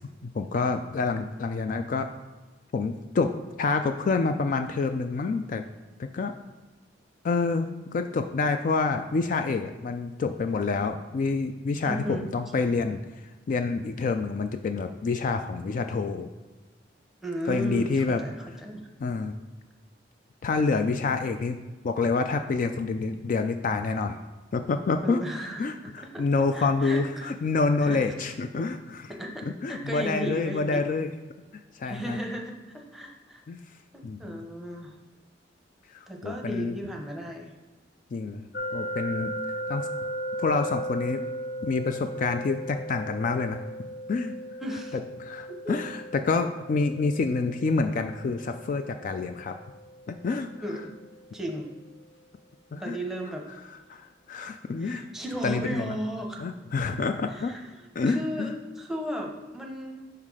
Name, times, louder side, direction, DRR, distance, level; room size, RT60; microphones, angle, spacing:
voice 1, 0.2-2.1 2.7-3.3 3.6-5.6 6.0-6.3 7.2-13.0 13.5-16.3 17.4-18.2 19.0-19.4 20.4-21.6 21.8-24.2 24.5-25.2 25.6-29.1 29.6-31.1 31.7-32.2 33.5-33.6 34.0-34.4 35.9-36.8 38.1-39.3 39.7-39.9 40.4-41.2 41.6-43.6 44.1-44.3 45.2-49.5 50.1-50.5 52.7-53.0 53.9-54.0 54.3-55.1 55.4-56.0 56.4-57.5 58.0-58.5, left 4 dB, 45° left, 7 dB, 0.3 m, -27 dB
voice 2, 11.8-12.5 17.2-18.8 25.0-27.3 27.8-28.2 29.2-29.3 29.7-30.8 31.8-33.4 33.9-34.9 36.1-37.5 44.6-45.0 45.5-45.8 50.6-50.9 51.3-51.7 52.8-53.5 54.8-56.5 57.3-57.7 58.0-60.0, equal, ahead, 1 dB, 0.8 m, -35 dB
sound 1, 38.5-51.4, right 1 dB, 65° left, 0.7 m, -37 dB
5.7 x 4.3 x 4.8 m, 1.2 s
head